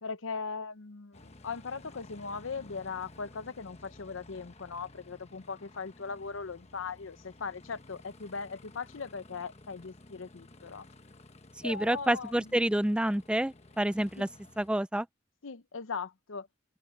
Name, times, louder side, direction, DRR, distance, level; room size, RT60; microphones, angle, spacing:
voice 1, 0.0-10.9 11.6-12.3 14.2-14.3 15.4-16.5, left 5 dB, 75° left, 0.8 m, -39 dB
Aircraft, 1.1-14.7, left 2 dB, 30° left, 1.2 m, -54 dB
voice 2, 11.6-14.3 14.6-15.1, right 1 dB, 5° right, 0.3 m, -28 dB
open air
head